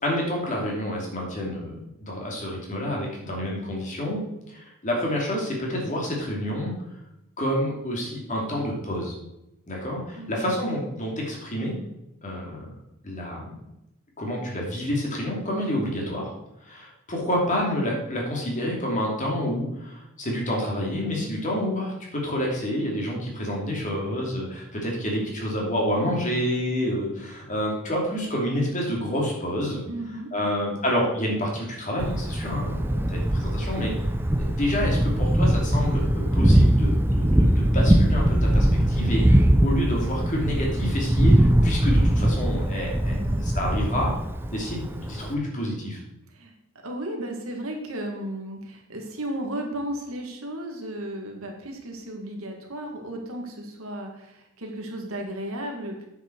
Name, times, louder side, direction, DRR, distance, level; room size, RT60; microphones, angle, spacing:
voice 1, 0.0-6.7 7.4-9.1 9.7-11.8 12.2-12.7 13.0-13.5 14.2-16.3 16.6-29.8 30.3-33.9 34.4-43.1 43.5-44.1 44.5-46.0, equal, 35° left, -2 dB, 2.7 m, -28 dB
voice 2, 10.1-10.5 29.9-30.6 43.0-43.5 46.3-46.5 46.8-56.0, right 1 dB, 70° right, 1 dB, 2.0 m, -34 dB
Thunder, 32.0-45.3, right 1 dB, 10° right, 0.5 m, -21 dB
9.2 x 7.4 x 4.6 m, 0.88 s
head